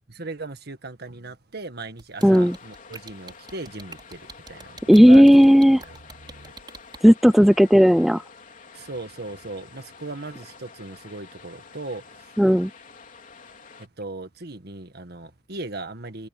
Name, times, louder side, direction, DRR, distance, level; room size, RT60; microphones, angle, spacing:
voice 1, 0.1-5.2 5.9-6.5 8.7-12.3 13.8-16.3, right 2 dB, 60° right, 1.8 m, -38 dB
sound 1, 2.0-7.0, right 4 dB, 25° right, 5.2 m, -43 dB
sound 2, 2.2-13.9, left 5 dB, 45° left, 3.4 m, -48 dB
voice 2, 2.2-2.6 4.9-5.8 7.0-8.2 12.4-12.7, equal, ahead, 0.4 m, -14 dB
head